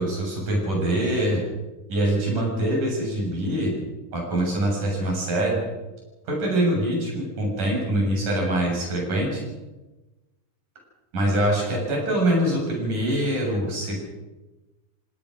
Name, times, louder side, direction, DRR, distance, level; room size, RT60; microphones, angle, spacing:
voice 1, 0.0-1.4 1.9-3.7 4.1-5.6 6.3-9.4 11.1-14.0, right 1 dB, 90° right, -1 dB, 8.9 m, -24 dB
28.5 x 18.0 x 6.5 m, 1.1 s
omnidirectional pair, 3.6 m